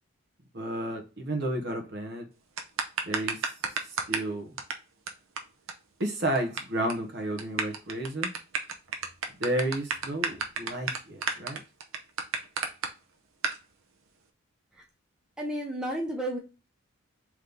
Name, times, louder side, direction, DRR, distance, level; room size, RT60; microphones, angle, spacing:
voice 1, 0.5-2.3 3.1-3.5 4.1-4.5 6.0-8.3 9.4-11.6, right 1 dB, 50° right, 0.9 m, -32 dB
sound 1, 2.6-4.3 4.6-4.7 5.1-5.2 5.4-5.5 5.7-5.8 6.0-6.6 6.9-7.1 7.4-12.9 13.4-13.6, right 5 dB, 70° right, 0.7 m, -30 dB
voice 2, 15.4-16.4, right 1 dB, 5° right, 0.6 m, -32 dB
3.5 x 3.1 x 3.8 m
head